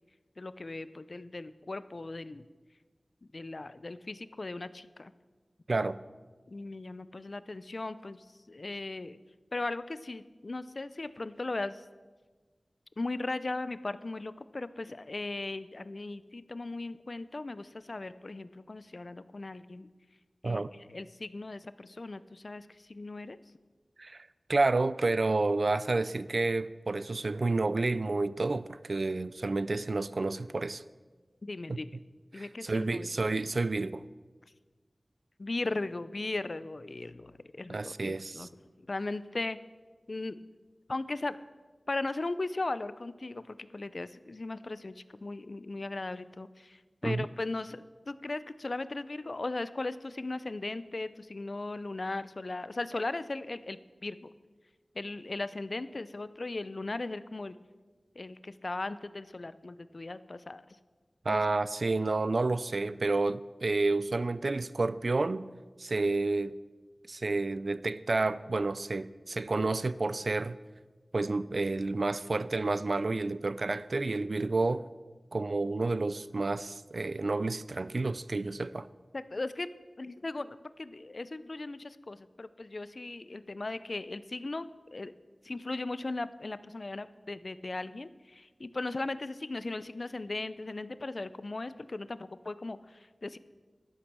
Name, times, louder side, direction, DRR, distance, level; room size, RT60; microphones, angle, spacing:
voice 1, 0.4-2.5 3.3-5.1 6.5-9.2 9.5-11.9 13.0-19.9 20.4-23.4 31.4-31.9 32.3-33.1 35.4-38.5 38.8-39.6 40.1-40.4 40.9-41.4 41.9-54.2 54.9-57.6 58.1-60.6 61.3-61.4 79.1-79.7 80.0-85.1 85.4-93.4, left 2 dB, 60° left, 0.5 m, -38 dB
voice 2, 24.0-30.8 31.7-31.8 32.3-34.0 37.7-38.5 47.0-47.2 61.3-65.5 65.8-66.5 67.1-70.6 71.1-74.9 75.3-78.9, right 3 dB, 70° right, 0.4 m, -30 dB
12.0 x 11.5 x 6.1 m
wide cardioid pair, 50°, 0 cm